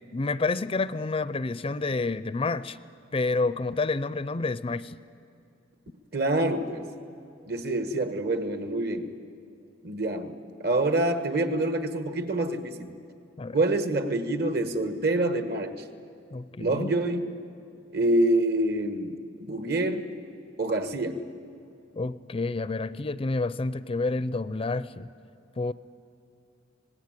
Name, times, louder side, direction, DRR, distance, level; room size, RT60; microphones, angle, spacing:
voice 1, 0.1-2.8 3.1-5.0 13.4-13.6 16.3-16.9 22.0-25.1 25.6-25.7, left 3 dB, 30° left, 16 dB, 0.5 m, -29 dB
voice 2, 6.1-6.9 7.5-9.1 9.8-10.3 10.6-12.9 13.5-15.7 16.6-17.3 17.9-20.1 20.6-21.2, right 2 dB, 55° right, 9 dB, 1.6 m, -26 dB
26.0 x 19.5 x 9.1 m, 2.6 s
head